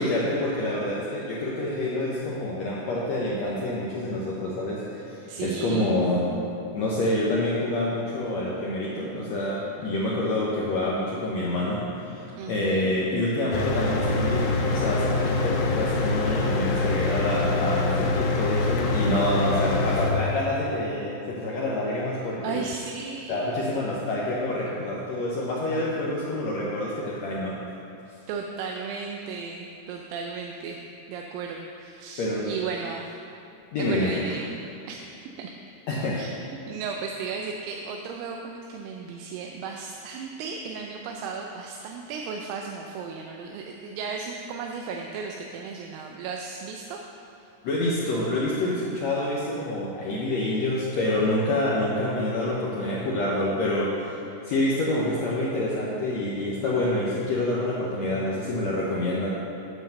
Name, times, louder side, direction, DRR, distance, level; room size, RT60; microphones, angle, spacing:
voice 1, 0.0-6.3 6.7-22.6 23.3-27.6 32.2-32.5 33.7-34.2 35.9-36.2 47.6-59.3, left 1 dB, 70° left, -5 dB, 1.8 m, -27 dB
voice 2, 5.3-6.0 12.4-12.9 22.4-23.5 28.3-30.8 31.1-33.1 33.8-34.5 34.9-35.0 35.4-35.5 36.2-36.3 36.7-47.0 47.4-47.5, right 5 dB, 90° right, 2 dB, 2.3 m, -35 dB
Mechanical fan, 13.5-20.1, left 3 dB, 85° left, 1.4 m, -25 dB
9.2 x 5.7 x 6.5 m, 2.7 s
omnidirectional pair, 3.9 m